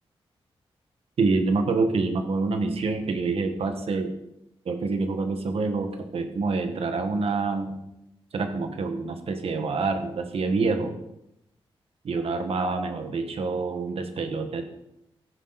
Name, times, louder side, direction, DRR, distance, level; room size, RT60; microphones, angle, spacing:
voice 1, 1.2-4.2 4.6-7.8 8.3-11.0 12.0-14.6, right 3 dB, 75° right, 7 dB, 1.6 m, -27 dB
14.0 x 11.0 x 4.2 m, 0.84 s
wide cardioid pair, 100°, 10 cm